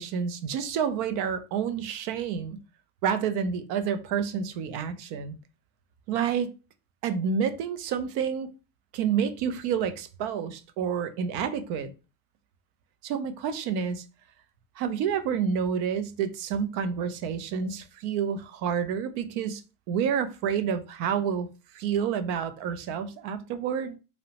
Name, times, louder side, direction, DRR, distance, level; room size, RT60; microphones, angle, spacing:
voice 1, 0.0-2.6 3.0-5.4 6.1-6.5 7.0-8.5 8.9-11.9 13.0-14.0 14.8-19.6 19.9-21.5 21.7-23.9, right 7 dB, 60° right, 0.5 m, -29 dB
2.9 x 2.0 x 2.8 m
cardioid pair, 155°, 43 cm